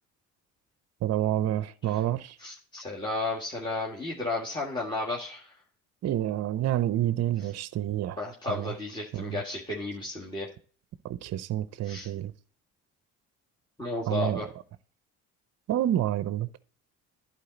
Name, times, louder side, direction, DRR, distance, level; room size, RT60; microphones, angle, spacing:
voice 1, 1.0-2.4 6.0-8.2 8.5-8.7 9.1-9.4 11.0-12.3 14.1-14.4 15.7-16.5, right 12 dB, 50° right, 0.6 m, -28 dB
voice 2, 2.4-5.6 7.4-7.5 8.2-10.5 11.8-12.1 13.8-14.5, left 2 dB, 15° left, 1.7 m, -33 dB
11.5 x 4.5 x 4.0 m
supercardioid pair, 70°, 34 cm